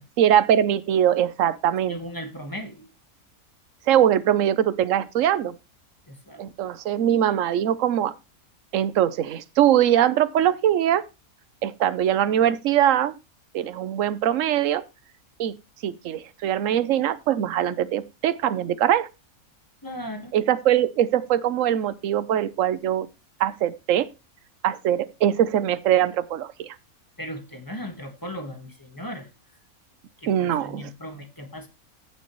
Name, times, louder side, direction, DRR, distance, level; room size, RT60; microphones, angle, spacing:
voice 1, 0.2-2.0 3.9-5.5 6.4-8.1 8.7-11.1 11.6-13.2 13.5-14.8 15.4-15.6 15.8-19.1 20.3-23.1 23.4-24.1 24.6-26.8 30.3-30.9, right 10 dB, 65° right, 1.0 m, -22 dB
voice 2, 1.9-2.9 6.1-6.4 19.8-20.4 27.2-29.3 30.2-31.7, equal, 15° left, 1.5 m, -37 dB
14.5 x 6.6 x 3.1 m
omnidirectional pair, 1.6 m